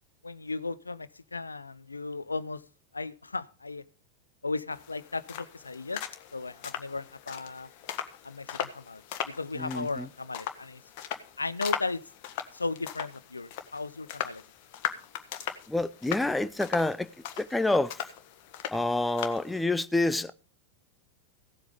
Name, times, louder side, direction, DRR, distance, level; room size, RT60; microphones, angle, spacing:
voice 1, 0.2-2.6 2.9-3.8 4.4-6.0 6.3-7.7 8.2-10.8 11.4-12.0 12.5-14.4, left 3 dB, 80° left, 0.6 m, -36 dB
sound 1, 4.7-19.6, left 10 dB, 45° left, 1.6 m, -39 dB
voice 2, 9.6-10.1 15.7-17.1 17.4-17.9 18.7-20.3, left 2 dB, 5° left, 0.6 m, -27 dB
16.5 x 8.0 x 5.2 m
figure-of-eight pair, 90°, 0 cm